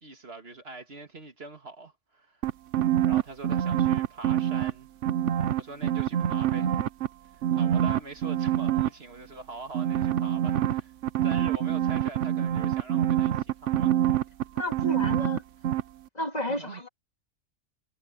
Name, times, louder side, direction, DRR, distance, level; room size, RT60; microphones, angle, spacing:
voice 1, 0.0-2.4 3.1-4.9 5.6-6.8 7.5-10.9 11.2-14.0 16.5-16.8, right 3 dB, 60° right, 2.3 m, -43 dB
sound 1, 2.4-4.7 5.0-7.1 7.4-8.9 9.7-15.4 15.6-15.8, right 11 dB, 85° right, 1.1 m, -25 dB
voice 2, 14.6-15.4 16.1-16.9, left 1 dB, 35° left, 2.3 m, -32 dB
omnidirectional pair, 1.2 m